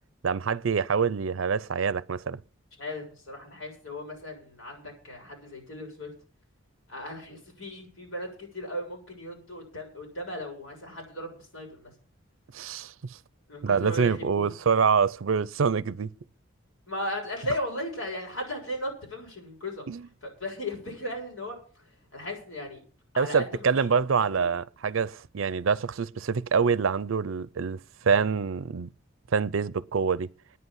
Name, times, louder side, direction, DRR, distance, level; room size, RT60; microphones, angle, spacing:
voice 1, 0.2-2.4 12.5-13.2 13.6-16.1 19.9-20.0 23.2-28.9 29.3-30.3, right 6 dB, 75° right, 0.5 m, -26 dB
voice 2, 2.8-6.1 6.9-11.9 13.5-14.5 16.9-19.9 20.2-22.8 23.1-23.9 24.2-24.4, left 1 dB, 85° left, 7.2 m, -36 dB
9.6 x 8.1 x 9.6 m
head